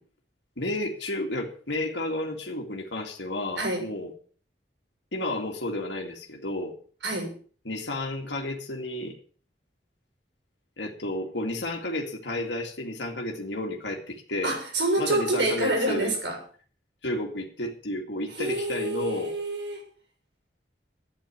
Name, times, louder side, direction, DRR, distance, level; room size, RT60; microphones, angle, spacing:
voice 1, 0.6-4.1 5.1-6.8 7.7-9.1 10.8-14.5 15.0-16.1 17.0-19.4, left 1 dB, 85° left, 0 dB, 2.3 m, -32 dB
voice 2, 3.6-3.9 7.0-7.3 14.4-16.4 18.3-19.8, right 2 dB, 90° right, 2 dB, 6.7 m, -27 dB
12.0 x 9.7 x 7.5 m, 0.42 s
head